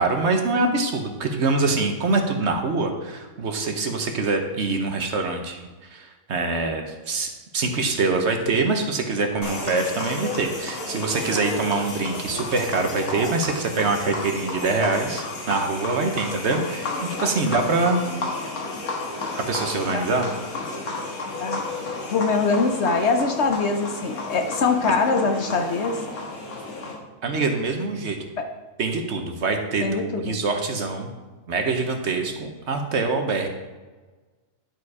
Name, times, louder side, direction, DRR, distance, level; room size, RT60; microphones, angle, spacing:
voice 1, 0.0-16.9 17.2-18.0 19.3-20.3 27.2-28.3 28.8-31.1 31.5-33.5, right 3 dB, 55° right, 4 dB, 1.1 m, -24 dB
sound 1, 9.4-26.9, left 3 dB, 80° left, 2.0 m, -32 dB
voice 2, 22.1-26.0 28.4-28.5 29.8-30.4, left 4 dB, 60° left, 5 dB, 0.9 m, -23 dB
10.5 x 5.0 x 4.7 m, 1.3 s
omnidirectional pair, 1.5 m